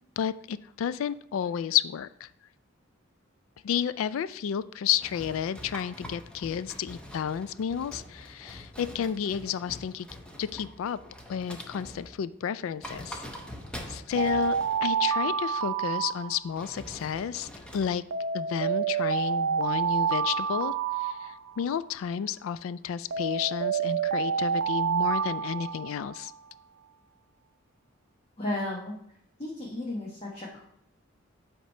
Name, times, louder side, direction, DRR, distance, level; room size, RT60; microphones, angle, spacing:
voice 1, 0.2-2.3 3.6-10.1 10.4-11.0 11.3-13.2 13.9-18.0 18.3-26.3, left 8 dB, 80° left, 16 dB, 0.3 m, -31 dB
sound 1, 5.0-12.3 12.7-15.0 16.5-17.9, equal, 5° left, 0.7 m, -44 dB
Alarm, 14.2-16.8 18.1-21.8 23.1-26.3, right 7 dB, 70° right, 0.4 m, -28 dB
voice 2, 28.4-28.9 29.4-30.6, left 1 dB, 30° left, -4 dB, 1.0 m, -33 dB
8.2 x 3.0 x 5.5 m, 0.72 s
head